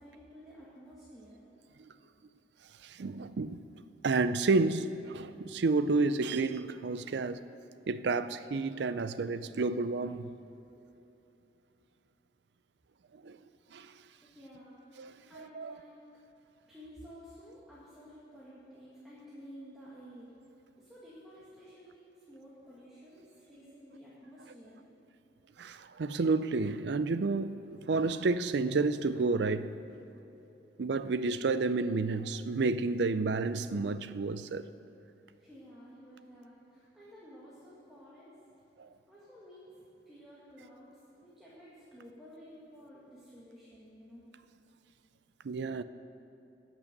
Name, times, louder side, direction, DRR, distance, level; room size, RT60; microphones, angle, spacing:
voice 1, 0.0-1.5 14.3-14.8 15.3-16.0 16.7-20.3 20.8-24.9 35.4-38.4 39.1-44.2, equal, ahead, 1.7 m, -52 dB
voice 2, 2.8-3.6 4.0-7.4 7.9-10.3 13.2-13.4 13.7-13.9 15.0-15.7 25.6-29.8 30.8-34.6 38.8-38.9 45.4-45.8, right 3 dB, 75° right, 0.5 m, -30 dB
18.5 x 6.2 x 6.6 m
head